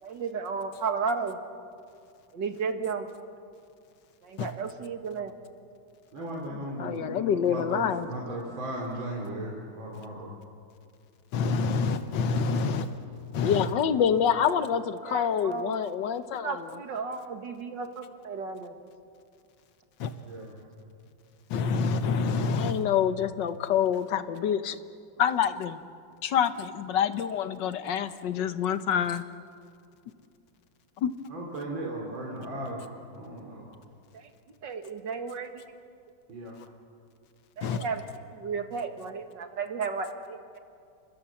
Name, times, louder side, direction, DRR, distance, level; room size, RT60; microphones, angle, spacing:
voice 1, 0.0-1.4 2.3-3.1 4.2-5.4 15.1-15.9 16.3-18.7 34.1-34.3 34.6-35.5 37.6-38.0 38.3-40.6, right 5 dB, 70° right, 6 dB, 2.4 m, -34 dB
voice 2, 6.1-10.4 20.2-20.5 31.3-33.7 36.3-36.6, right 1 dB, 85° right, -2 dB, 3.8 m, -36 dB
voice 3, 6.8-8.1 13.4-16.8 22.5-24.8 25.2-25.8 26.2-29.2 31.0-31.2, left 8 dB, 70° left, 11 dB, 1.6 m, -27 dB
voice 4, 11.3-12.9 13.3-13.7 20.0-20.1 21.5-22.8 36.6-36.7 37.6-37.8, left 4 dB, 90° left, 9 dB, 1.9 m, -27 dB
29.5 x 26.0 x 7.2 m, 2.4 s
omnidirectional pair, 2.1 m